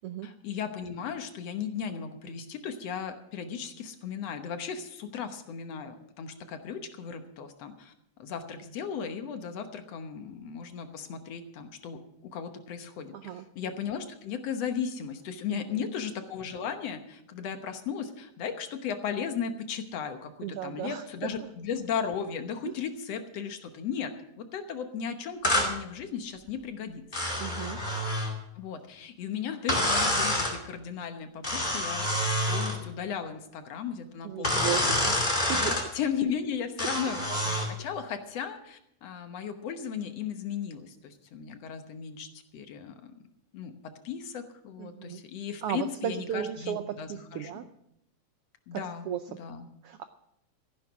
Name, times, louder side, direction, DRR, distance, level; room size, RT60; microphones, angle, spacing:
voice 1, 0.2-7.9 8.2-24.1 24.4-27.0 28.6-34.9 35.5-42.3 42.5-43.0 43.5-47.5 48.7-49.1 49.4-49.7, left 7 dB, 65° left, 8 dB, 2.0 m, -36 dB
voice 2, 13.1-13.5 15.5-15.8 20.4-21.0 21.4-21.5 22.6-22.7 27.4-27.8 34.2-35.1 35.4-35.6 44.8-45.2 45.6-47.7 49.1-49.2 49.8-50.0, right 10 dB, 85° right, 10 dB, 1.3 m, -35 dB
sound 1, 25.4-25.7 27.1-28.3 29.7-30.6 31.4-32.8 34.4-35.9 36.8-37.7, left 1 dB, 15° left, 2.3 m, -27 dB
14.5 x 10.5 x 6.1 m, 0.77 s
omnidirectional pair, 3.4 m